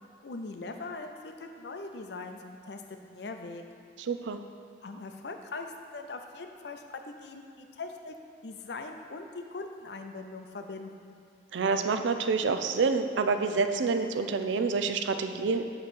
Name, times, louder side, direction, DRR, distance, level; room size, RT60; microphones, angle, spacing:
voice 1, 0.2-2.8 3.1-3.6 4.8-8.1 8.4-11.2, left 3 dB, 65° left, 5 dB, 0.5 m, -41 dB
voice 2, 4.0-4.4 11.5-15.7, right 4 dB, 90° right, 8 dB, 0.4 m, -27 dB
8.1 x 3.1 x 6.2 m, 2.3 s
head